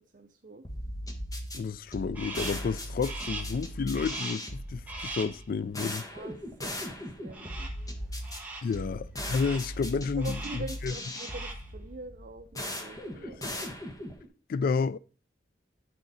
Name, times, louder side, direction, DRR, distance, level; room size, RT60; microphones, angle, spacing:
voice 1, 0.1-0.6 6.1-7.7 8.7-8.8 10.2-13.7, right 3 dB, 45° right, 0.7 m, -44 dB
sound 1, 0.6-14.3, equal, 20° left, 1.3 m, -38 dB
voice 2, 1.5-6.0 8.6-10.9 13.4-13.6 14.5-15.0, left 5 dB, 50° left, 0.3 m, -31 dB
Crow, 2.1-2.7 3.0-3.6 3.9-4.5 4.9-5.4 7.3-7.9 8.2-8.8 9.2-9.8 10.2-10.8 11.1-11.7, right 2 dB, 10° right, 1.4 m, -40 dB
10.0 x 6.5 x 4.1 m
head